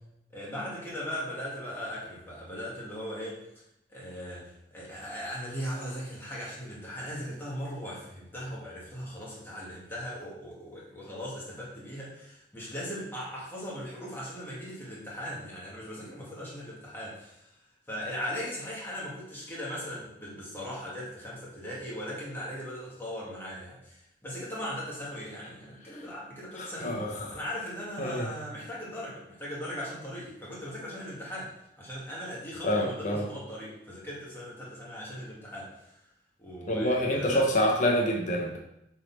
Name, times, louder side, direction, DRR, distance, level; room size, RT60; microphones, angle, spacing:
voice 1, 0.3-3.4 3.9-17.5 17.9-36.0 36.4-37.5, equal, 15° left, -6 dB, 2.0 m, -39 dB
voice 2, 26.6-27.3 28.0-28.3 32.6-33.2 36.7-38.6, equal, 45° left, 0 dB, 1.0 m, -27 dB
6.6 x 4.2 x 4.1 m, 0.80 s
head